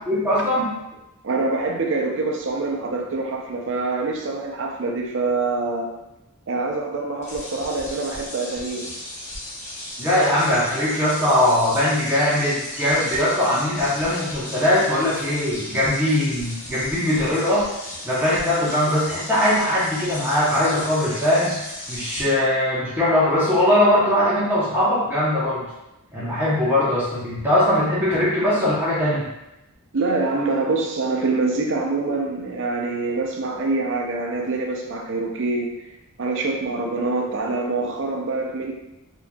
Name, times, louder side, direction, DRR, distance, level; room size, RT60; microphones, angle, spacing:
voice 1, 0.1-0.8 10.0-17.7 18.0-21.6 21.9-25.6 26.1-29.3, left 1 dB, 10° right, -10 dB, 0.8 m, -20 dB
voice 2, 1.2-5.9 6.5-9.0 29.9-35.8 36.2-38.7, right 3 dB, 55° right, 1 dB, 0.5 m, -25 dB
sound 1, 7.2-22.2, left 1 dB, 30° left, 0.8 m, -35 dB
4.4 x 2.7 x 2.3 m, 0.93 s
head